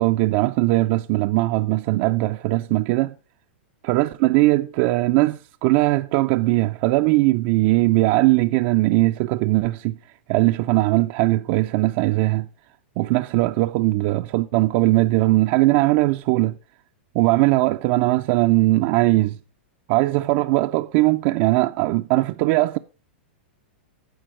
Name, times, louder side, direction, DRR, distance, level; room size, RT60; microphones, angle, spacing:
voice 1, 0.0-3.1 3.8-10.0 10.3-12.5 13.0-16.6 17.1-19.4 19.9-22.8, right 19 dB, 45° right, 0.4 m, -20 dB
11.5 x 4.5 x 4.4 m
hypercardioid pair, 125°, 6 cm